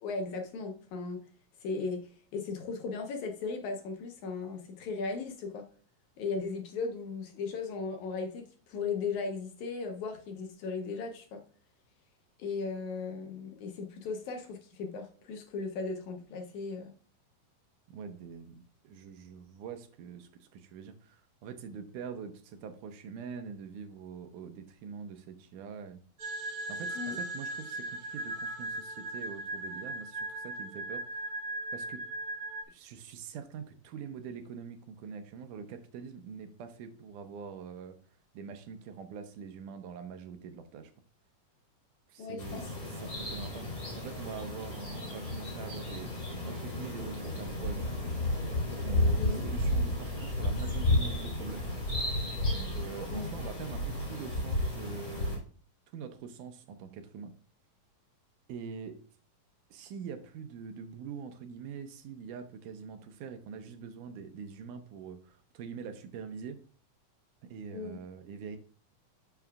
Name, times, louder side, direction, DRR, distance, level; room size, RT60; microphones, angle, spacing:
voice 1, 0.0-1.2 1.6-5.7 6.2-11.4 12.4-16.9 27.0-27.2 42.2-42.6 49.2-49.4 53.1-53.3 67.7-68.0, left 4 dB, 70° left, 4 dB, 2.0 m, -37 dB
voice 2, 17.9-26.0 26.7-31.2 31.7-32.0 32.7-38.0 38.3-40.9 42.1-42.6 43.0-46.1 46.4-48.0 48.8-51.7 52.5-55.4 55.9-57.3 58.5-59.0 59.7-66.6 67.4-68.6, right 6 dB, 80° right, 8 dB, 2.1 m, -44 dB
sound 1, 26.2-32.6, right 2 dB, 55° right, 1.6 m, -38 dB
sound 2, 42.4-55.4, left 1 dB, 25° left, 3.2 m, -32 dB
12.0 x 5.8 x 2.3 m, 0.42 s
omnidirectional pair, 3.8 m